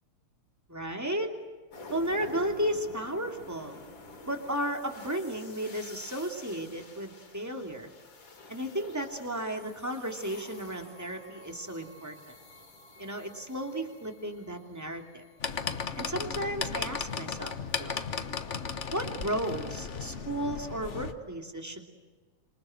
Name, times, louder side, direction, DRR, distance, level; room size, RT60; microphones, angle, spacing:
voice 1, 0.7-1.3 1.9-3.8 4.3-7.9 8.5-12.2 13.0-15.2 16.0-18.0 18.9-21.9, right 1 dB, 5° right, 4 dB, 2.6 m, -34 dB
sound 1, 1.7-16.5, left 2 dB, 50° left, 4.4 m, -50 dB
sound 2, 15.4-21.1, left 5 dB, 80° left, 0.6 m, -35 dB
27.5 x 25.5 x 7.9 m, 1.4 s
omnidirectional pair, 3.3 m